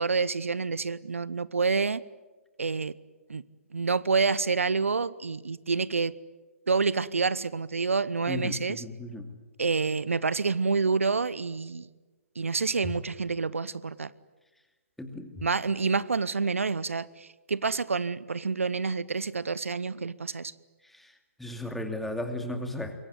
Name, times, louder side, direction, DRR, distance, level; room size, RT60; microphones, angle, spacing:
voice 1, 0.0-2.0 2.6-2.9 3.3-3.4 3.7-6.1 6.7-8.8 9.6-11.9 12.4-14.1 15.4-20.5, right 4 dB, 70° right, 19 dB, 0.8 m, -28 dB
voice 2, 8.3-9.3 15.0-15.5 20.8-22.9, left 1 dB, ahead, 6 dB, 2.5 m, -35 dB
26.5 x 23.0 x 9.7 m, 1.2 s
figure-of-eight pair, 130°, 7 cm